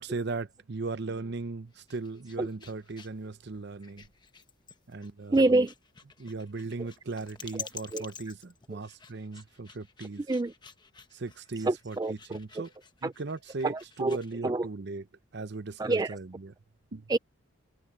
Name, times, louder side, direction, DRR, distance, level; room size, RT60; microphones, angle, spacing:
voice 1, 0.0-4.0 4.9-5.4 6.2-10.2 11.1-12.7 13.0-13.7 14.0-15.0 15.3-16.5 16.9-17.0, right 3 dB, 50° right, 0.7 m, -37 dB
sound 1, 1.7-14.4, left 6 dB, 20° left, 1.0 m, -49 dB
voice 2, 5.3-5.7 6.8-6.9 7.5-8.0 8.7-8.8 10.2-10.5 11.6-12.6 13.0-13.1 13.6-14.7 15.8-16.2 17.1-17.2, right 2 dB, 20° right, 0.3 m, -28 dB
head